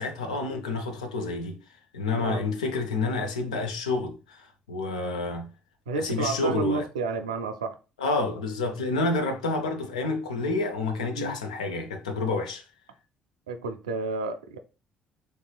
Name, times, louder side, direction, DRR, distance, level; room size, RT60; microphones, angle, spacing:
voice 1, 0.0-1.6 1.9-5.5 6.0-6.8 8.0-12.6, left 3 dB, 85° left, 0.5 m, -29 dB
voice 2, 5.9-7.8 11.1-11.4 13.5-14.6, right 4 dB, 85° right, 0.3 m, -30 dB
3.1 x 3.0 x 2.3 m
figure-of-eight pair, 45°, 4 cm